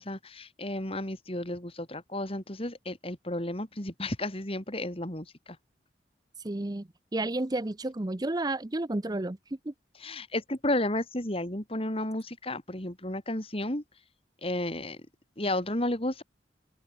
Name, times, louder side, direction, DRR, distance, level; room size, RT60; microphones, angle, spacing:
voice 1, 0.0-5.6 10.0-13.8 14.4-15.0 15.4-16.2, left 1 dB, 35° left, 3.8 m, -32 dB
voice 2, 6.4-9.4 9.7-9.8, right 2 dB, 20° right, 0.7 m, -31 dB
open air
head